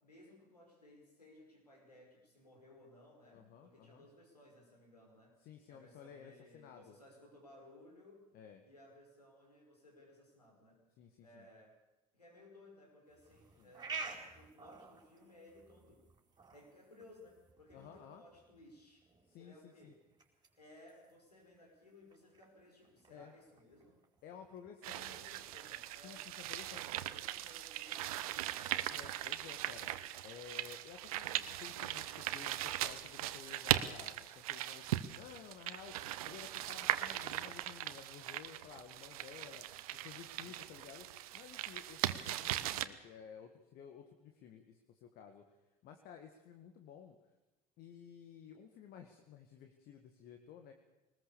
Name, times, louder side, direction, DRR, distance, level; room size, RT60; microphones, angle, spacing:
voice 1, 0.0-5.4 5.7-8.3 8.6-10.8 11.2-11.8 12.1-16.0 16.5-19.1 19.4-20.0 20.6-24.0 24.9-26.3 26.6-29.2 39.9-40.6, left 1 dB, 85° left, 0 dB, 5.5 m, -60 dB
voice 2, 3.3-4.1 5.4-7.0 8.3-8.6 11.0-11.5 13.6-13.7 17.7-18.2 19.3-19.9 23.1-23.3 24.2-25.2 26.0-26.8 28.9-29.9 30.2-39.7 40.0-45.5 45.8-47.1 47.8-50.7, left 8 dB, 50° left, 6 dB, 1.8 m, -54 dB
sound 1, 13.1-27.2, right 4 dB, 20° right, 4.4 m, -53 dB
sound 2, 24.8-42.8, right 14 dB, 65° right, 1.0 m, -39 dB
22.0 x 20.0 x 6.9 m, 1.0 s
figure-of-eight pair, 65°, 20 cm